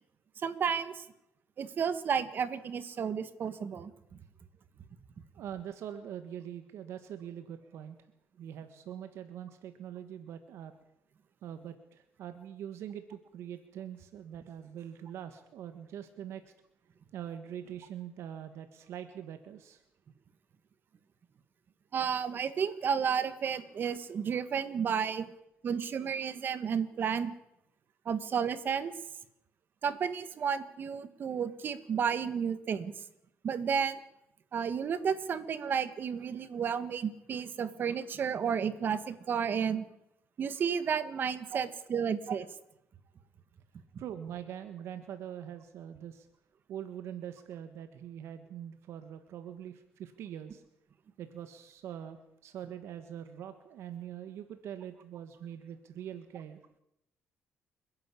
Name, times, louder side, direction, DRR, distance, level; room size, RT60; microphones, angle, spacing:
voice 1, 0.4-1.0 1.6-3.9 21.9-25.3 25.6-27.3 28.1-28.9 29.8-32.9 33.4-34.0 34.5-39.9 40.4-42.5, right 7 dB, 45° right, 13 dB, 1.7 m, -32 dB
voice 2, 5.3-8.0 8.4-10.7 11.4-16.5 17.1-19.8 41.0-42.0 44.0-46.3 46.7-50.6 51.2-56.6, right 9 dB, 75° right, 9 dB, 1.6 m, -43 dB
30.0 x 10.5 x 8.5 m, 0.82 s
cardioid pair, 120°, 5 cm